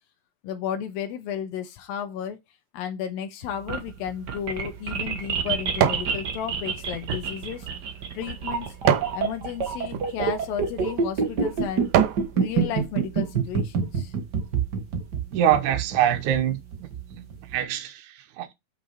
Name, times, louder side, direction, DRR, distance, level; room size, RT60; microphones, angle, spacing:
voice 1, 0.4-2.4 2.7-7.7 8.1-8.7 9.1-11.9 12.4-14.1, left 8 dB, 85° left, 2.8 m, -33 dB
sound 1, 3.4-17.5, right 6 dB, 50° right, 1.3 m, -27 dB
sound 2, 4.3-6.1 6.6-9.2 9.8-10.1 10.7-10.9 11.4-12.3 12.8-12.9, right 9 dB, 90° right, 2.7 m, -27 dB
voice 2, 15.3-16.6 17.5-18.0 18.4-18.5, right 10 dB, 65° right, 2.2 m, -23 dB
6.7 x 5.8 x 4.5 m
omnidirectional pair, 4.0 m